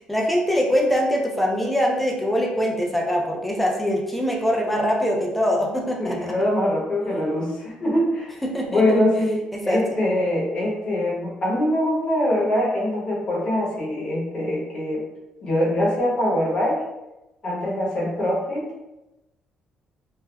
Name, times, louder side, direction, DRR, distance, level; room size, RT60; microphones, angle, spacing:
voice 1, 0.1-6.3 8.4-8.8 9.5-9.8, equal, 5° left, -1 dB, 0.3 m, -23 dB
voice 2, 6.0-8.4 8.6-15.0 15.4-16.8 17.4-18.7, left 1 dB, 35° left, -5 dB, 0.9 m, -23 dB
3.3 x 2.0 x 2.2 m, 0.99 s
cardioid pair, 150°, 3 cm